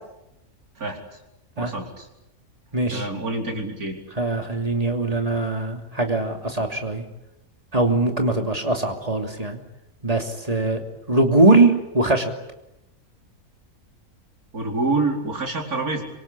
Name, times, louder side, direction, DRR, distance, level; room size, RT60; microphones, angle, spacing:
voice 1, 1.6-2.1 2.9-4.0 14.5-16.0, right 3 dB, 80° right, 1 dB, 4.9 m, -26 dB
voice 2, 2.7-3.1 4.2-7.0 7.7-9.6 10.0-10.8 11.1-12.3, right 2 dB, 25° right, 3 dB, 3.0 m, -21 dB
26.5 x 24.5 x 8.7 m, 0.91 s
omnidirectional pair, 1.5 m